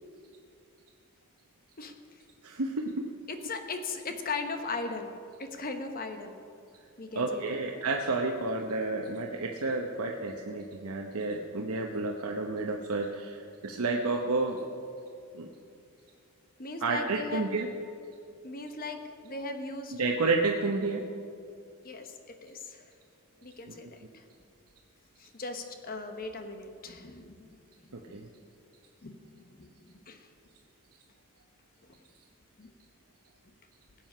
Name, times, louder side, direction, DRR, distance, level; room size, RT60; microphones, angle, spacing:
voice 1, 2.4-3.1 7.2-14.6 15.3-15.5 16.8-17.7 19.9-21.0 23.7-23.9 27.9-28.3, right 3 dB, 85° right, 1 dB, 0.9 m, -31 dB
voice 2, 3.3-5.1 5.4-6.4 7.0-7.6 16.6-17.5 18.4-20.0 21.8-22.8 23.4-23.9 24.1-24.2 25.2-28.2 29.0-30.3 32.6-32.7, left 3 dB, 40° left, 6 dB, 1.1 m, -38 dB
19.0 x 7.7 x 5.5 m, 2.4 s
head